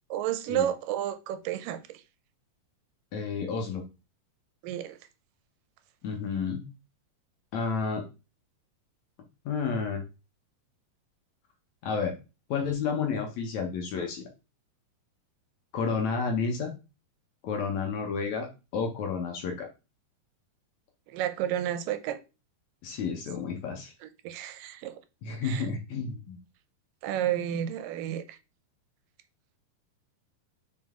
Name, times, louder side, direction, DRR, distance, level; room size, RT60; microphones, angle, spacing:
voice 1, 0.1-2.0 4.6-5.0 21.1-22.2 24.0-25.0 25.4-25.7 27.0-28.4, right 11 dB, 80° right, 2.2 m, -31 dB
voice 2, 3.1-3.8 6.0-6.6 7.5-8.0 9.5-10.0 11.8-12.1 12.5-14.3 15.7-16.7 17.4-18.5 18.7-19.7 22.8-23.9 25.2-26.4, left 5 dB, 65° left, 2.0 m, -31 dB
6.1 x 4.6 x 3.6 m
omnidirectional pair, 4.0 m